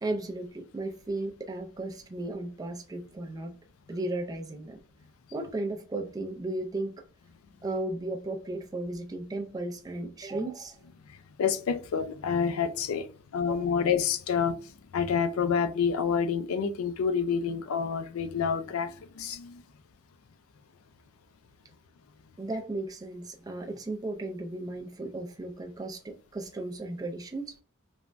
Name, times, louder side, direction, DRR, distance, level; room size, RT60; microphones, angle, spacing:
voice 1, 0.0-3.6 3.9-4.8 5.3-7.0 7.6-10.8 13.4-13.6 22.4-27.6, right 2 dB, 15° right, 0.3 m, -35 dB
voice 2, 11.4-13.0 13.3-14.6 14.9-18.9 19.2-19.5, left 6 dB, 75° left, 0.4 m, -28 dB
3.2 x 2.1 x 2.4 m
head